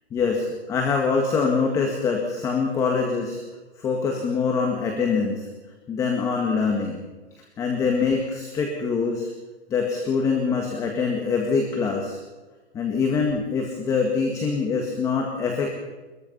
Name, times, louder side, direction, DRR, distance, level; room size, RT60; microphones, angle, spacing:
voice 1, 0.1-3.4 3.8-5.5 5.9-7.0 7.6-9.3 9.7-12.2 12.7-15.8, left 5 dB, 10° left, 2 dB, 1.8 m, -24 dB
22.5 x 22.0 x 5.6 m, 1.3 s
hypercardioid pair, 170°, 33 cm